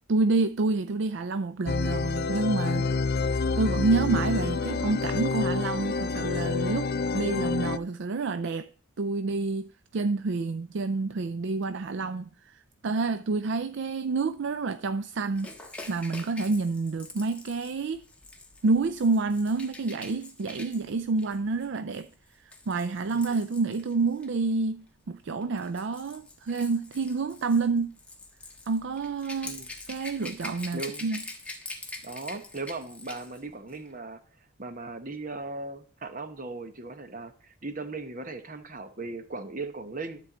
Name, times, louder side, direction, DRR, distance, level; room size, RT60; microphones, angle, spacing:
voice 1, 0.1-2.9 3.6-8.7 9.0-15.5 15.9-18.0 18.6-22.1 22.4-27.9 28.7-29.6 29.9-31.2, right 3 dB, 55° right, 0.4 m, -28 dB
sound 1, 1.7-7.8, left 4 dB, 45° left, 0.5 m, -28 dB
Rattle / Rattle (instrument), 15.3-24.4 25.3-33.4 33.7-33.9, left 2 dB, 5° left, 1.3 m, -45 dB
voice 2, 30.7-31.1 31.8-34.2 34.6-40.2, right 3 dB, 35° right, 1.0 m, -38 dB
12.5 x 4.6 x 7.9 m
head